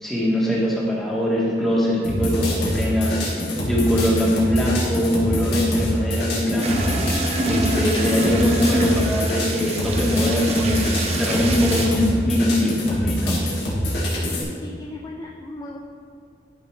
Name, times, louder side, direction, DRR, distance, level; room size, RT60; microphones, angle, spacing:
voice 1, 0.0-3.2 3.6-7.0 7.4-13.4, left 1 dB, ahead, -6 dB, 1.5 m, -22 dB
sound 1, 2.0-14.4, equal, 75° left, 2.0 m, -24 dB
sound 2, 6.6-11.9, right 2 dB, 35° right, 0.8 m, -26 dB
voice 2, 14.4-15.8, left 2 dB, 20° left, 0 dB, 0.4 m, -37 dB
12.0 x 5.7 x 3.3 m, 2.2 s
head